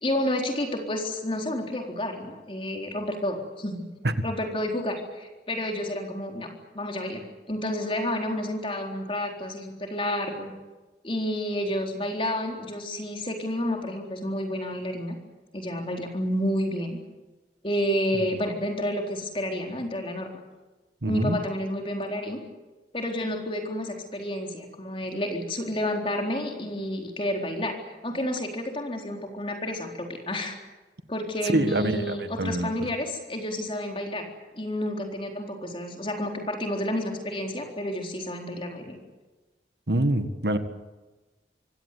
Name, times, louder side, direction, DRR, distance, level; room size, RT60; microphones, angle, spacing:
voice 1, 0.0-3.8 4.2-6.5 6.7-7.2 7.5-10.5 11.0-15.2 15.5-17.0 17.6-20.3 21.0-22.4 22.9-27.8 28.0-30.6 31.1-34.2 34.5-39.0, left 1 dB, 30° left, 2 dB, 4.0 m, -30 dB
voice 2, 21.0-21.4 31.4-32.7 39.9-40.6, right 1 dB, 70° right, 9 dB, 1.8 m, -25 dB
25.0 x 17.0 x 9.4 m, 1.2 s
head